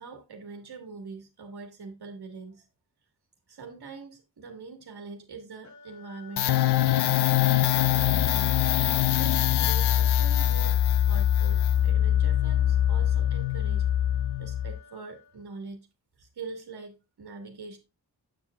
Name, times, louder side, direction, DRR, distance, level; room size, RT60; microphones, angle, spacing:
voice 1, 0.0-2.7 3.5-8.5 9.2-13.9 14.4-15.9 16.2-17.8, right 4 dB, 80° right, 1.6 m, -43 dB
sound 1, 5.6-15.6, left 6 dB, 45° left, 0.9 m, -50 dB
sound 2, 6.4-14.8, left 11 dB, 90° left, 0.5 m, -23 dB
8.8 x 7.1 x 2.3 m
wide cardioid pair, 120°, 38 cm